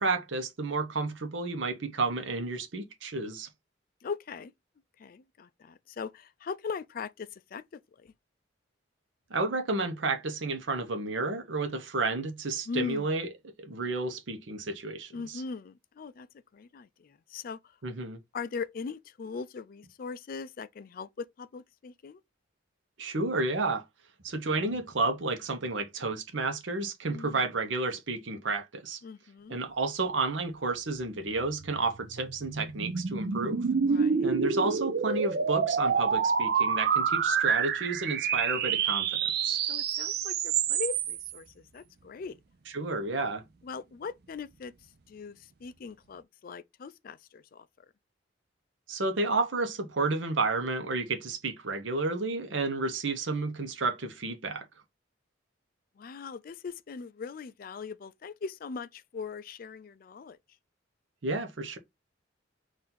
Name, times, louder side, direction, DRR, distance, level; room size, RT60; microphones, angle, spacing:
voice 1, 0.0-3.5 9.3-13.3 13.6-15.4 17.8-18.2 23.0-23.8 24.2-29.0 29.5-33.6 34.2-39.1 39.4-39.6 42.7-43.4 48.9-54.7 61.2-61.8, right 3 dB, 75° right, 0.8 m, -31 dB
voice 2, 4.0-4.5 5.0-8.1 12.7-13.1 15.1-16.3 16.5-17.8 18.3-22.2 27.0-27.4 29.0-29.6 33.8-34.3 39.7-42.4 43.6-44.7 45.1-47.9 56.0-60.4, left 4 dB, 50° left, 0.3 m, -40 dB
sound 1, 31.6-41.3, right 6 dB, 55° right, 0.5 m, -28 dB
4.3 x 2.6 x 3.7 m
head